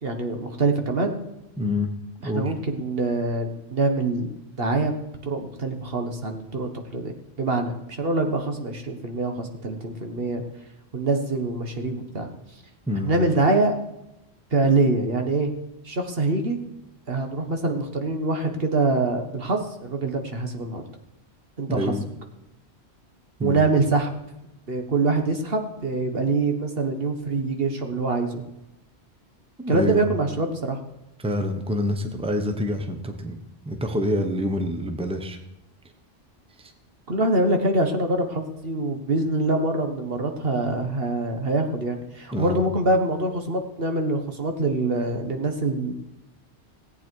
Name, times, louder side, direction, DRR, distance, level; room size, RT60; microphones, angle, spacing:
voice 1, 0.0-1.2 2.2-4.3 4.6-4.9 5.2-7.1 7.4-10.4 10.9-12.3 13.0-13.7 14.5-15.5 15.8-16.6 17.1-20.8 21.6-21.9 23.4-24.1 24.7-28.4 29.7-30.8 37.1-45.9, right 2 dB, 60° right, 5 dB, 1.6 m, -24 dB
voice 2, 1.6-1.9 2.2-2.5 12.9-13.1 21.7-22.0 23.4-23.6 29.6-30.1 31.2-33.4 33.7-35.4 36.6-36.7 42.3-42.6, left 1 dB, 5° right, 6 dB, 1.1 m, -26 dB
17.5 x 8.6 x 4.7 m, 0.92 s
omnidirectional pair, 1.1 m